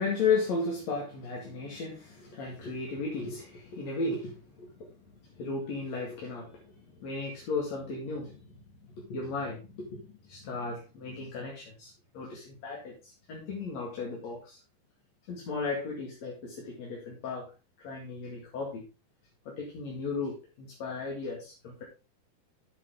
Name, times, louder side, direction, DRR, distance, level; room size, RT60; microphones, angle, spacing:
voice 1, 0.0-4.9 5.2-8.5 8.9-10.0 10.3-14.6 15.3-17.5 17.8-18.8 19.5-21.8, left 4 dB, 50° left, -2 dB, 3.1 m, -35 dB
10.5 x 7.6 x 3.8 m, 0.30 s
omnidirectional pair, 4.2 m